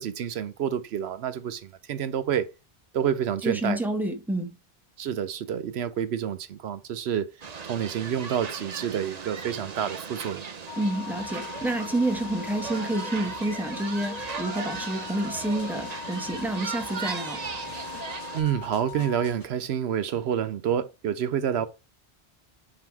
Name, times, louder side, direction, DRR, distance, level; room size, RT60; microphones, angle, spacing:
voice 1, 0.0-2.5 2.9-3.8 5.0-7.3 7.6-10.5 18.3-21.7, right 9 dB, 80° right, 0.9 m, -28 dB
voice 2, 3.4-4.5 10.8-17.4, right 1 dB, ahead, 1.1 m, -29 dB
sound 1, 7.4-18.4, right 5 dB, 45° right, 0.7 m, -37 dB
sound 2, 10.7-19.3, left 14 dB, 85° left, 1.0 m, -41 dB
sound 3, 11.2-19.5, equal, 20° left, 2.3 m, -50 dB
6.2 x 4.0 x 4.6 m
omnidirectional pair, 1.1 m